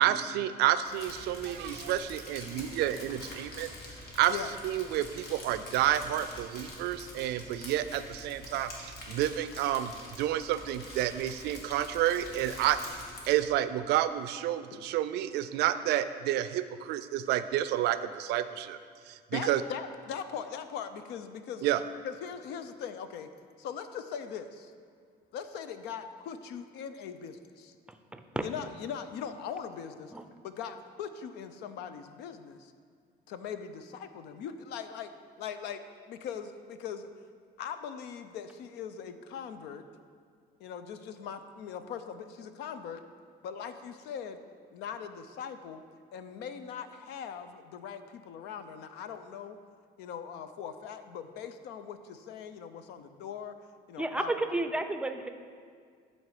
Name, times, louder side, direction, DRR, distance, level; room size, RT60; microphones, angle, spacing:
voice 1, 0.0-3.7 4.2-4.4 4.6-9.9 10.2-12.8 13.3-18.8 19.1-19.6 21.6-21.8, right 12 dB, 80° right, 13 dB, 0.4 m, -29 dB
Crumpling crinkling, 0.8-13.4, left 1 dB, 70° left, 1.8 m, -46 dB
voice 2, 19.3-21.6 22.0-23.3 23.6-24.7 25.3-27.8 28.3-30.1 30.4-32.7 33.3-35.1 35.4-35.8 36.1-37.1 37.6-39.8 40.6-43.0 43.4-44.4 44.7-45.8 46.1-49.6 50.0-53.5 53.9-54.3, left 7 dB, 85° left, 10 dB, 0.5 m, -40 dB
voice 3, 27.9-28.4 30.1-30.2 54.0-55.3, right 2 dB, 5° right, 7 dB, 0.5 m, -32 dB
11.0 x 4.2 x 4.9 m, 2.1 s
cardioid pair, 110°, 17 cm